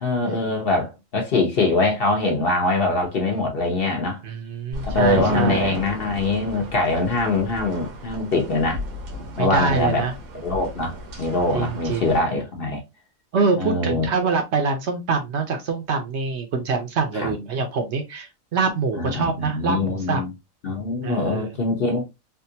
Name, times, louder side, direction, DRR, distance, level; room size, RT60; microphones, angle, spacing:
voice 1, 0.0-4.2 4.9-8.8 9.4-10.1 10.3-12.8 13.6-14.1 17.1-17.3 18.9-20.3 20.6-22.0, left 2 dB, 50° left, 0.8 m, -23 dB
voice 2, 4.2-5.8 9.4-10.1 11.5-12.2 13.3-20.2 21.0-21.5, right 4 dB, 60° right, 0.8 m, -25 dB
sound 1, 4.7-12.2, right 1 dB, 85° right, 1.4 m, -33 dB
3.5 x 2.4 x 2.7 m
omnidirectional pair, 1.4 m